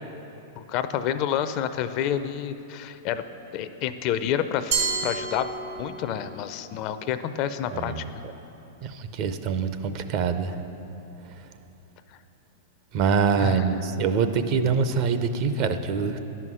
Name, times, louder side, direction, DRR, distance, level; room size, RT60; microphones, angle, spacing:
voice 1, 0.6-3.2 3.5-8.1 13.4-13.7, left 9 dB, 45° left, 11 dB, 0.4 m, -29 dB
Glass, 4.7-6.1, right 5 dB, 85° right, 2.2 m, -28 dB
voice 2, 8.8-10.6 12.9-16.2, right 6 dB, 50° right, 9 dB, 0.6 m, -25 dB
10.5 x 5.7 x 6.2 m, 3.0 s
hypercardioid pair, 115°, 0 cm